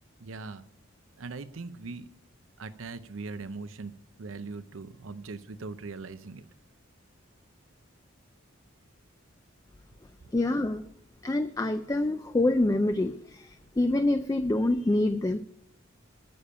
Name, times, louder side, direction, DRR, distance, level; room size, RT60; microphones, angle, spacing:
voice 1, 0.2-0.6 1.2-2.1 2.6-3.9 4.2-6.5, right 3 dB, 85° right, 13 dB, 0.6 m, -40 dB
voice 2, 10.3-10.8 11.2-15.4, left 2 dB, 15° left, 9 dB, 0.4 m, -26 dB
9.6 x 6.9 x 8.5 m, 0.74 s
head